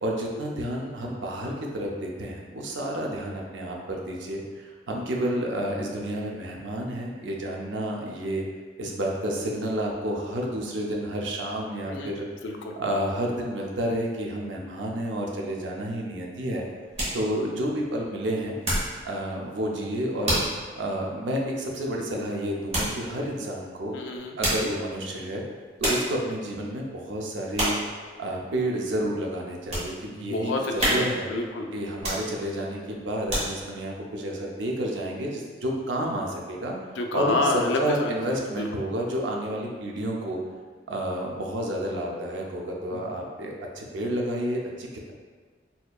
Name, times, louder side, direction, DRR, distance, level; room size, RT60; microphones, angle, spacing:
voice 1, 0.0-8.5 8.8-12.3 12.8-16.6 17.1-18.5 19.0-20.4 20.8-23.9 24.4-25.4 25.8-27.8 28.2-31.3 31.7-36.8 37.1-40.4 40.9-45.1, right 1 dB, 75° right, -1 dB, 0.6 m, -30 dB
voice 2, 11.9-12.8 23.9-24.7 30.1-31.7 37.0-38.7 42.9-43.1, left 2 dB, 75° left, 2 dB, 0.4 m, -29 dB
sound 1, 16.3-19.0 19.4-19.7 20.2-20.6 21.1-21.2 22.7-23.0 24.2-24.8 25.4-25.5 25.8-26.2 26.7-27.0 27.5-27.9 28.4-28.5 29.0-29.9 30.3-30.4 30.8-31.3 31.9-32.6 33.0-33.8 34.3-34.4, right 1 dB, 35° right, 1.2 m, -28 dB
4.3 x 2.7 x 2.3 m, 1.5 s
head